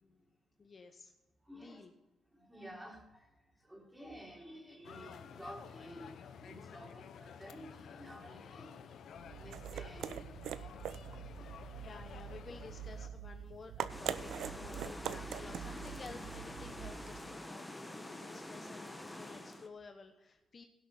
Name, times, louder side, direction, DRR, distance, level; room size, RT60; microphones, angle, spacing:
voice 1, 0.6-1.1 1.5-1.9 11.5-20.7, left 4 dB, 40° left, 6 dB, 1.0 m, -53 dB
voice 2, 1.4-1.8 2.3-3.4 3.6-9.0 9.2-10.7 11.3-11.5 19.3-19.4, equal, 10° right, 0 dB, 3.5 m, -52 dB
sound 1, 4.8-13.1, left 7 dB, 65° left, 0.9 m, -52 dB
sound 2, 9.1-17.4, right 9 dB, 75° right, 0.6 m, -44 dB
sound 3, 13.9-19.7, left 1 dB, 10° left, 1.4 m, -47 dB
16.5 x 6.4 x 5.7 m, 1.0 s
cardioid pair, 90°, 0 cm